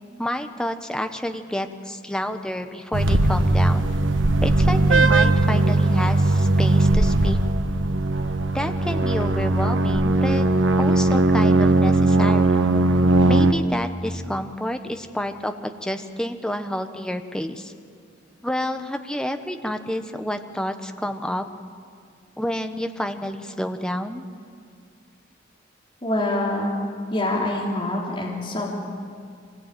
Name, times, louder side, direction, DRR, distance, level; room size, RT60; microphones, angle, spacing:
voice 1, 0.2-3.9 4.4-7.4 8.5-10.5 10.8-12.6 13.3-17.7 18.4-21.4 22.4-24.2, equal, 5° left, 6 dB, 1.2 m, -29 dB
sound 1, 2.9-13.5, right 2 dB, 90° right, 1.3 m, -19 dB
voice 2, 26.0-26.7 27.1-28.7, left 1 dB, 30° left, -3 dB, 3.4 m, -25 dB
25.5 x 20.5 x 9.2 m, 2.2 s
head